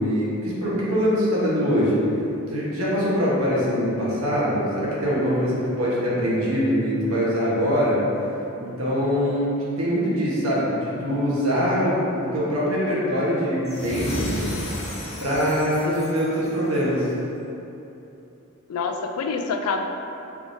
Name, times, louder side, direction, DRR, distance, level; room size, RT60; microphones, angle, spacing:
voice 1, 0.0-2.0 2.5-8.0 8.6-14.4 15.2-17.1, equal, 70° right, -7 dB, 1.1 m, -23 dB
sound 1, 13.6-17.0, left 1 dB, 30° left, 0.7 m, -33 dB
voice 2, 18.7-19.8, left 4 dB, 85° left, 4 dB, 0.4 m, -27 dB
4.8 x 3.5 x 2.6 m, 2.9 s
head